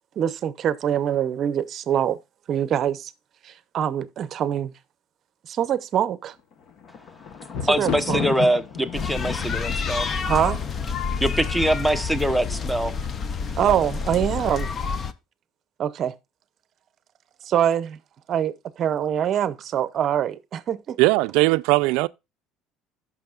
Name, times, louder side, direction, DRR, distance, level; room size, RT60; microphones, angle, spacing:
voice 1, 0.2-2.2 2.5-3.1 3.4-4.7 5.4-6.4 7.6-8.2 10.2-10.6 13.6-14.7 15.8-16.2 17.4-18.0 18.3-21.0, right 10 dB, 40° right, 0.7 m, -24 dB
Thunder, 6.5-11.6 12.4-12.9 13.2-13.3, left 7 dB, 45° left, 1.1 m, -33 dB
voice 2, 7.7-10.1 11.2-12.9, right 1 dB, ahead, 0.8 m, -23 dB
sound 1, 8.9-15.1, left 5 dB, 30° left, 0.6 m, -28 dB
voice 3, 21.0-22.1, right 22 dB, 80° right, 0.4 m, -19 dB
14.5 x 6.2 x 2.4 m
cardioid pair, 140°, 0 cm